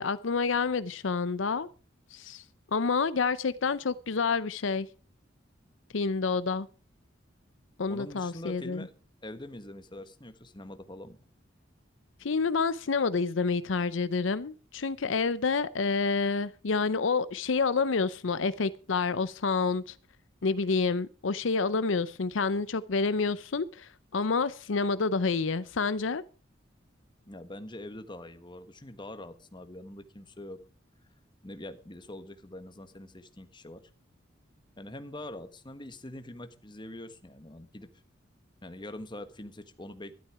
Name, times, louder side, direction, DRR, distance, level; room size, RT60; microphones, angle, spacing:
voice 1, 0.0-1.7 2.1-2.4 2.7-4.9 5.9-6.7 7.8-8.9 12.2-19.9 20.4-26.2, left 4 dB, 75° left, 0.6 m, -28 dB
voice 2, 7.9-8.9 9.2-11.2 27.3-30.6 31.4-33.8 34.8-37.9 38.6-40.2, left 1 dB, 25° left, 1.4 m, -44 dB
12.5 x 12.5 x 4.7 m
head